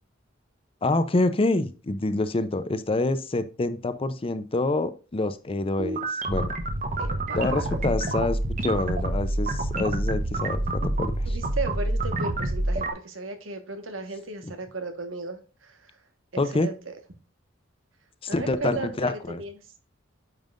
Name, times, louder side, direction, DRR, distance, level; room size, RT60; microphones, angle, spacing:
voice 1, 0.8-6.5 7.4-11.4 16.4-16.7 18.2-19.4, left 2 dB, 30° left, 12 dB, 0.6 m, -27 dB
sound 1, 5.8-12.9, right 2 dB, 40° right, 1.0 m, -27 dB
voice 2, 7.0-7.6 11.3-15.9 16.5-16.9 18.3-19.5, right 3 dB, 90° right, 7 dB, 1.4 m, -35 dB
9.0 x 5.5 x 2.5 m, 0.34 s
head